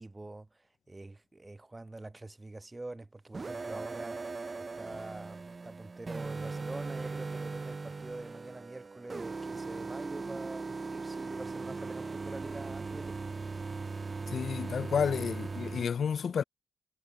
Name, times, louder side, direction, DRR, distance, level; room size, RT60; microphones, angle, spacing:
voice 1, 0.0-13.3, right 2 dB, 25° right, 1.0 m, -45 dB
sound 1, 3.3-15.9, right 4 dB, 40° right, 0.4 m, -39 dB
voice 2, 14.3-16.4, left 7 dB, 60° left, 0.3 m, -31 dB
supercardioid pair, 45°, 0 cm